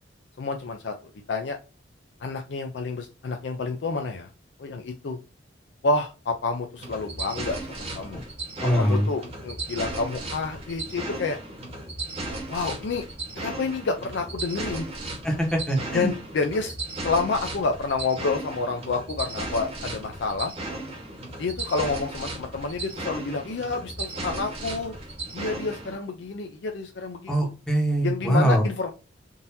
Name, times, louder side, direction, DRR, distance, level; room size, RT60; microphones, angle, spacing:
voice 1, 0.4-0.9 1.3-1.6 2.2-4.3 4.6-5.2 5.8-8.2 8.7-11.4 12.5-13.0 13.4-14.9 15.9-16.7 17.0-20.5 21.4-24.9 25.3-27.5 28.0-28.9, left 4 dB, 70° left, 4 dB, 0.4 m, -29 dB
sound 1, 6.8-26.0, right 2 dB, 35° right, 1.2 m, -36 dB
voice 2, 8.6-9.1 15.2-16.1 27.3-28.6, right 1 dB, 5° left, -1 dB, 1.1 m, -23 dB
3.8 x 2.6 x 2.6 m, 0.33 s
head